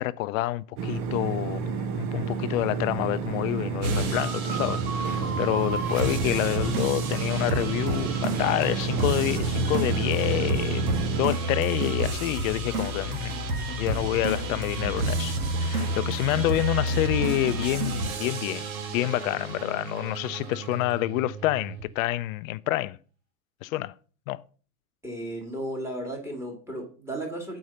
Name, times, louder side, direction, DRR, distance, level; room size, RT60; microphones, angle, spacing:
voice 1, 0.0-13.4 13.8-23.0 23.6-23.9 24.3-24.4, left 17 dB, 65° left, 0.6 m, -28 dB
sound 1, 0.8-11.3, right 6 dB, 45° right, 1.0 m, -31 dB
sound 2, 3.8-21.8, right 2 dB, 70° right, 1.6 m, -30 dB
voice 2, 25.0-27.6, right 1 dB, 5° right, 2.0 m, -34 dB
6.4 x 4.7 x 5.5 m
hypercardioid pair, 120°, 45 cm